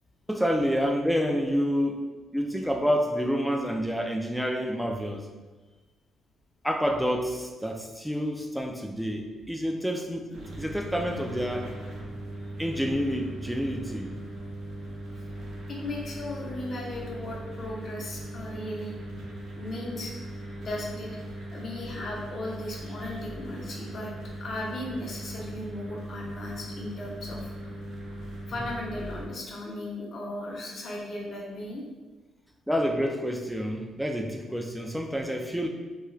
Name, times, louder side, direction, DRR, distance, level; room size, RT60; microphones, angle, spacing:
voice 1, 0.3-2.0 2.3-5.3 6.6-11.7 12.6-14.1 32.7-35.7, equal, ahead, 3 dB, 0.3 m, -28 dB
sound 1, 10.3-29.3, right 1 dB, 70° right, 0.6 m, -39 dB
voice 2, 15.7-18.9 19.6-20.1 20.6-21.1 21.5-24.1 24.4-27.7 28.5-31.8, left 1 dB, 50° left, -2 dB, 0.6 m, -36 dB
2.3 x 2.3 x 3.0 m, 1.3 s
cardioid pair, 90°, 0 cm